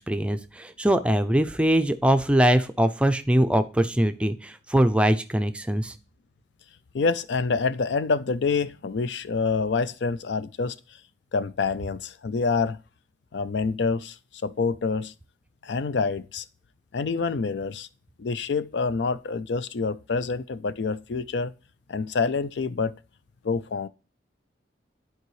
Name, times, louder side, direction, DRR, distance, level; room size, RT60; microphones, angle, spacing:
voice 1, 0.0-5.9, right 1 dB, 5° right, 0.4 m, -22 dB
voice 2, 6.9-10.8 11.3-12.8 13.3-14.2 14.4-15.1 15.6-16.4 16.9-17.9 18.2-21.5 21.9-23.0 23.4-23.9, left 4 dB, 85° left, 0.5 m, -27 dB
11.0 x 4.6 x 3.1 m
head